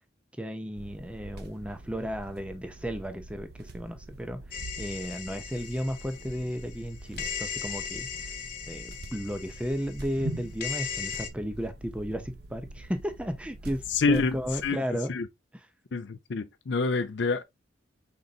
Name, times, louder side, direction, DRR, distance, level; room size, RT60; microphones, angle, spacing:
voice 1, 0.4-8.3 8.7-15.1, equal, 5° right, 0.5 m, -34 dB
sound 1, 0.8-14.7, right 1 dB, 55° right, 0.7 m, -44 dB
sound 2, 4.5-6.9 7.2-11.3, left 7 dB, 50° left, 1.1 m, -38 dB
voice 2, 13.9-14.4 14.6-14.8 15.1-15.3 15.9-17.4, left 4 dB, 65° left, 0.5 m, -27 dB
5.3 x 3.9 x 2.4 m
head